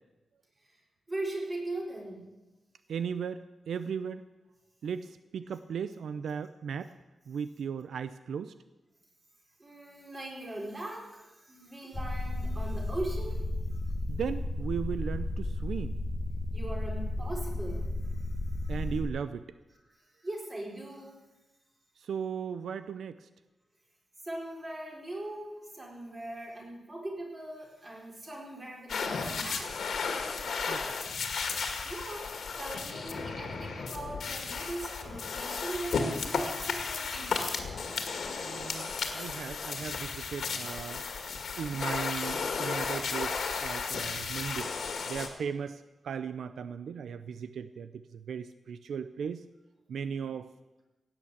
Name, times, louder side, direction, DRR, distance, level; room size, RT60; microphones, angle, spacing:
voice 1, 1.1-2.3 9.6-13.4 13.7-13.8 16.5-18.7 19.9-21.2 24.2-29.8 31.8-32.3 32.6-38.0 38.3-38.5 41.7-42.0, right 1 dB, 25° right, -2 dB, 4.3 m, -40 dB
voice 2, 2.9-4.2 4.8-6.9 7.3-8.5 14.1-16.0 18.7-19.4 22.0-23.3 30.7-30.8 38.4-41.0 41.6-44.7 45.1-49.4 49.9-50.5, right 7 dB, 85° right, 12 dB, 0.5 m, -37 dB
sound 1, 11.9-19.1, left 2 dB, 20° left, 1.0 m, -33 dB
sound 2, 28.9-45.3, left 5 dB, 70° left, 2.0 m, -34 dB
16.5 x 9.0 x 8.3 m, 1.1 s
wide cardioid pair, 145°, 0 cm